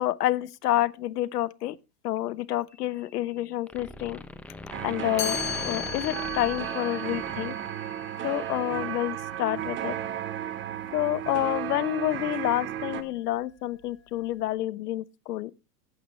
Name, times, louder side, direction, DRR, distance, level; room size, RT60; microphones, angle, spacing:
voice 1, 0.0-1.7 2.0-4.2 4.8-7.5 8.2-9.9 10.9-15.5, left 14 dB, 70° left, 1.0 m, -28 dB
sound 1, 2.7-3.4 3.7-8.1, left 2 dB, 5° left, 0.6 m, -41 dB
sound 2, 4.7-13.0, right 11 dB, 25° right, 1.2 m, -34 dB
Chime, 5.2-11.0, left 8 dB, 35° left, 3.3 m, -38 dB
14.5 x 8.3 x 3.1 m
hypercardioid pair, 125°, 49 cm